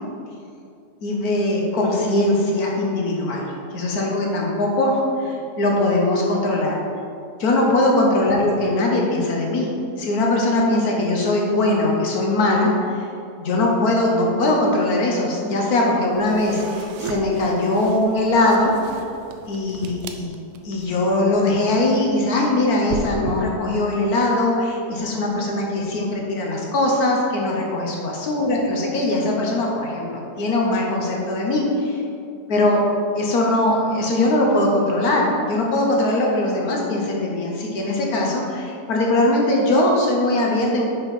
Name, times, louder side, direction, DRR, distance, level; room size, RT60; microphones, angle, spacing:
voice 1, 1.0-6.8 7.4-13.1 13.4-19.0 19.5-20.3 20.6-32.0 32.5-32.8 33.2-40.9, left 2 dB, 65° left, -1 dB, 1.3 m, -21 dB
sound 1, 16.1-20.9, right 5 dB, 70° right, 0.8 m, -39 dB
sound 2, 22.9-23.4, right 4 dB, 85° right, 1.2 m, -27 dB
6.0 x 4.2 x 5.2 m, 2.5 s
omnidirectional pair, 1.8 m